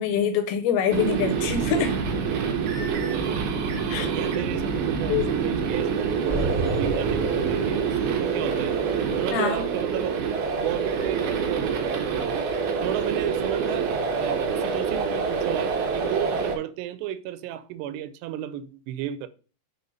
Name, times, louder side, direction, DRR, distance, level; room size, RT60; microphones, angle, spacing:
voice 1, 0.0-1.9 3.9-4.1 5.1-5.3 9.3-9.7, left 7 dB, 75° left, 2.5 m, -25 dB
sound 1, 0.9-16.6, right 6 dB, 70° right, 2.9 m, -26 dB
voice 2, 4.0-8.8 9.2-10.3 10.5-12.5 12.8-19.3, right 11 dB, 85° right, 2.7 m, -33 dB
sound 2, 6.3-9.0, right 2 dB, 25° right, 1.5 m, -32 dB
7.1 x 3.8 x 5.3 m
omnidirectional pair, 4.9 m